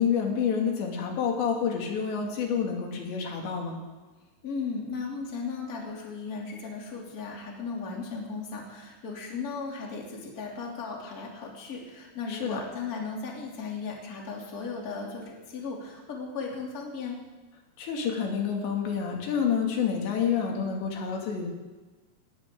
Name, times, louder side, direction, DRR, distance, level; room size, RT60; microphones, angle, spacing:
voice 1, 0.0-3.8 12.3-12.6 17.8-21.5, left 7 dB, 90° left, 0 dB, 4.7 m, -28 dB
voice 2, 4.4-17.2, left 4 dB, 25° left, -2 dB, 2.7 m, -36 dB
19.5 x 18.0 x 3.8 m, 1.3 s
omnidirectional pair, 4.9 m